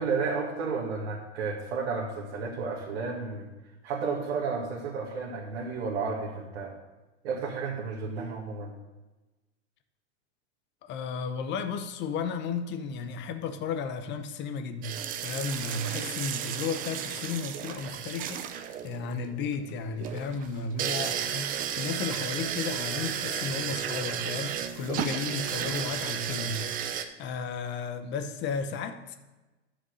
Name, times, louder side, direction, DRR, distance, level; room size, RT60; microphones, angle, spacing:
voice 1, 0.0-3.5 3.8-6.7 7.2-8.7, right 4 dB, 65° right, -4 dB, 2.0 m, -32 dB
voice 2, 10.8-18.4 18.8-29.2, left 5 dB, 30° left, 9 dB, 0.8 m, -34 dB
sound 1, 14.8-27.0, right 9 dB, 25° right, 0.5 m, -33 dB
9.9 x 5.2 x 6.2 m, 1.1 s
hypercardioid pair, 130°, 37 cm